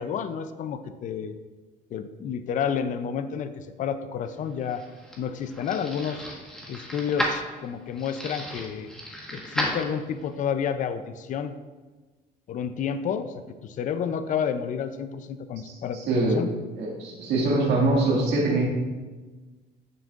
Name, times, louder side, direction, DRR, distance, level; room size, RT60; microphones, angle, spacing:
voice 1, 0.0-1.3 1.9-4.8 5.2-6.3 6.7-8.9 9.3-11.5 12.5-13.3 13.6-16.5, left 7 dB, 50° left, 11 dB, 0.5 m, -30 dB
sound 1, 4.4-10.4, equal, 5° left, 1.4 m, -34 dB
voice 2, 15.7-16.4 16.8-18.7, right 2 dB, 75° right, -2 dB, 2.0 m, -24 dB
10.5 x 6.2 x 2.5 m, 1.3 s
cardioid pair, 110°, 17 cm